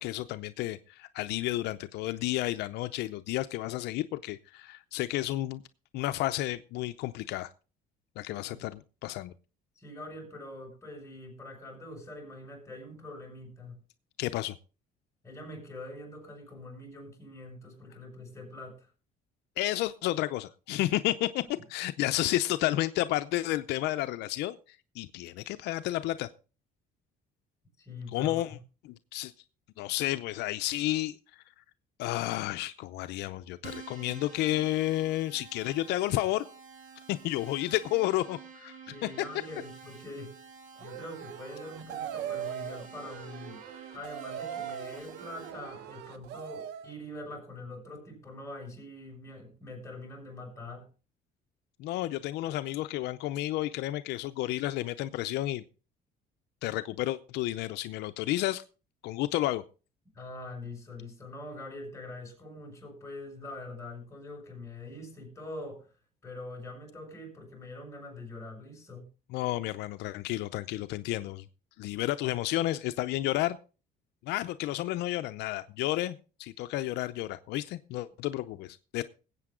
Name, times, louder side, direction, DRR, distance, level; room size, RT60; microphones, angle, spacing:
voice 1, 0.0-5.6 5.9-7.5 8.2-9.3 14.2-14.6 19.6-21.4 21.7-26.3 28.1-28.6 28.8-29.3 29.8-31.4 32.0-36.5 37.1-38.7 51.8-55.6 56.6-58.6 59.0-59.6 69.3-71.4 71.8-73.6 74.2-79.0, left 16 dB, 85° left, 0.6 m, -31 dB
voice 2, 9.8-13.8 15.2-18.9 27.8-28.6 38.8-40.4 40.8-43.7 43.9-50.9 60.1-65.9 66.2-69.1, left 2 dB, 15° left, 6.4 m, -44 dB
Keyboard (musical), 33.6-45.5, right 5 dB, 50° right, 5.7 m, -50 dB
sound 1, 40.8-46.9, right 10 dB, 85° right, 0.9 m, -40 dB
19.5 x 8.4 x 3.7 m
cardioid pair, 110°, 17 cm